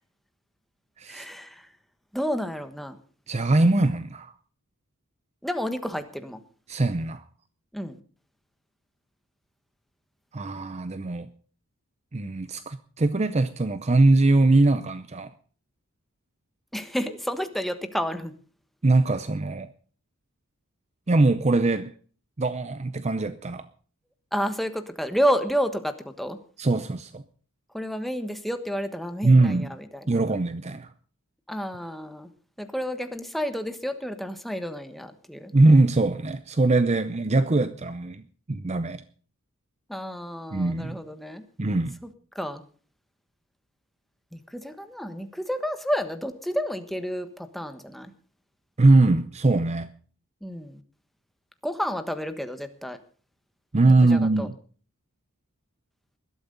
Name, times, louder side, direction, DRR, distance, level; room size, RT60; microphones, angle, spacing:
voice 1, 1.1-1.6 2.1-3.0 5.4-6.4 7.7-8.0 16.7-18.3 24.3-26.4 27.7-30.2 31.5-32.3 32.6-35.5 39.9-41.4 42.3-42.6 44.3-48.1 50.4-50.8 51.6-53.0 53.9-54.5, equal, ahead, 1.3 m, -30 dB
voice 2, 3.3-4.3 6.7-7.2 10.3-11.3 12.1-15.3 18.8-19.7 21.1-21.9 22.4-23.7 26.6-27.2 29.2-29.7 30.1-30.9 35.5-39.0 40.5-41.0 41.6-42.0 48.8-49.9 53.7-54.6, right 2 dB, 30° right, 0.6 m, -21 dB
20.5 x 12.5 x 4.0 m
head